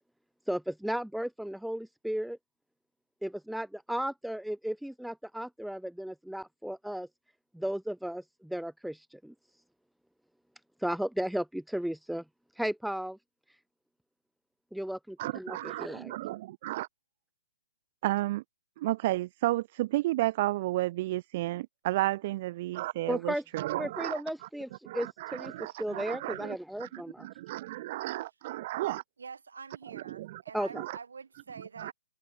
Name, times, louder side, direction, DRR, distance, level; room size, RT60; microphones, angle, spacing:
voice 1, 0.5-2.4 3.2-7.1 7.5-9.3 10.8-12.2 12.6-13.2 14.7-16.1 23.1-23.4 23.8-27.3 30.5-30.8, equal, ahead, 0.8 m, -35 dB
voice 2, 15.2-16.9 18.0-18.4 18.8-24.2 24.9-29.0 29.9-30.4 30.7-31.0 31.8-31.9, right 17 dB, 40° right, 0.7 m, -32 dB
voice 3, 29.2-31.9, right 5 dB, 80° right, 4.2 m, -46 dB
open air
hypercardioid pair, 145°, 0 cm